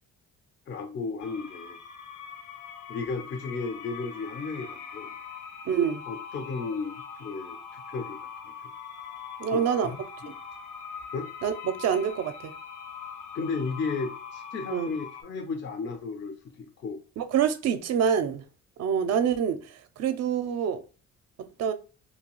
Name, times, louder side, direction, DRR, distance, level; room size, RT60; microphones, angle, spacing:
voice 1, 0.7-1.8 2.9-5.1 6.1-8.5 9.5-10.0 10.2-10.3 11.1-11.3 13.3-17.0, left 4 dB, 40° left, 0.5 m, -34 dB
sound 1, 1.2-15.2, left 7 dB, 75° left, 0.7 m, -42 dB
voice 2, 5.7-6.0 9.4-9.9 11.4-12.5 14.7-14.9 17.2-18.4 18.8-20.8 21.4-21.7, right 8 dB, 60° right, 0.5 m, -26 dB
2.7 x 2.3 x 3.0 m
cardioid pair, 90°, 30 cm